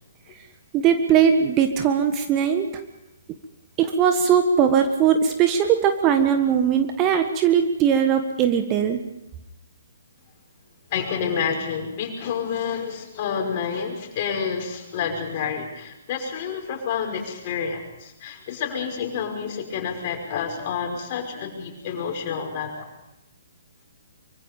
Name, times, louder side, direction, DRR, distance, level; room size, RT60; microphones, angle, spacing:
voice 1, 0.7-2.7 3.8-9.0, right 8 dB, 25° right, 7 dB, 1.5 m, -20 dB
voice 2, 10.9-22.9, left 6 dB, 35° left, 2 dB, 5.7 m, -29 dB
24.5 x 24.5 x 5.4 m, 0.87 s
figure-of-eight pair, 125°, 0 cm